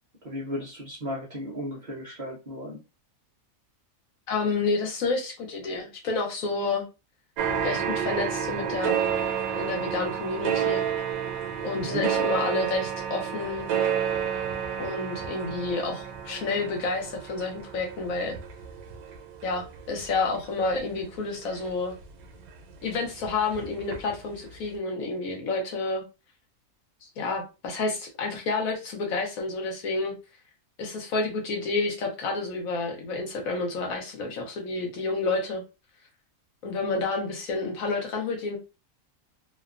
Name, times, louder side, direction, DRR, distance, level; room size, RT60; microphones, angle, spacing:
voice 1, 0.2-2.8 11.9-12.1, left 1 dB, 45° right, -4 dB, 0.7 m, -35 dB
voice 2, 4.3-6.8 7.6-9.0 9.6-10.8 11.6-13.7 14.8-18.4 19.4-21.9 22.8-26.0 27.0-30.1 30.8-35.6 36.6-38.6, left 3 dB, 75° left, 2 dB, 1.2 m, -29 dB
sound 1, 7.4-22.5 22.8-24.2 24.5-24.6, right 8 dB, 85° right, 1.1 m, -30 dB
2.8 x 2.2 x 2.4 m, 0.29 s
omnidirectional pair, 1.5 m